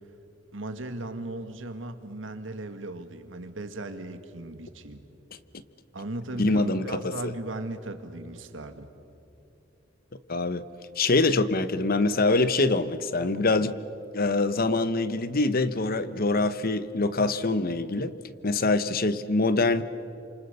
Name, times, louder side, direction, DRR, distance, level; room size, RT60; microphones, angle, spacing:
voice 1, 0.5-5.0 5.9-8.9, right 2 dB, 80° right, 2.0 m, -37 dB
voice 2, 6.4-7.3 10.3-10.6 11.0-13.7 14.1-18.1 18.4-19.8, left 3 dB, 50° left, 1.0 m, -24 dB
29.0 x 27.0 x 6.8 m
head